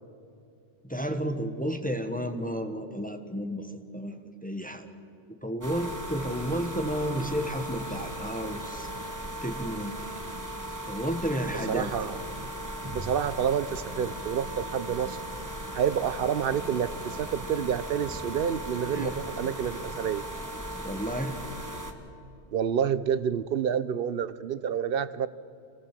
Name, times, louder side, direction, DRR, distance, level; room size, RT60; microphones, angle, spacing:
voice 1, 0.8-4.9 5.4-8.9 9.4-9.9 10.9-11.9 18.9-19.1 20.8-21.4, equal, 10° left, 6 dB, 1.3 m, -32 dB
sound 1, 5.6-21.9, right 1 dB, 15° right, 1.8 m, -37 dB
voice 2, 11.7-12.1 12.9-15.2 15.7-20.2 22.5-25.3, right 8 dB, 60° right, 16 dB, 0.9 m, -28 dB
26.5 x 18.0 x 7.5 m, 2.6 s
omnidirectional pair, 1.1 m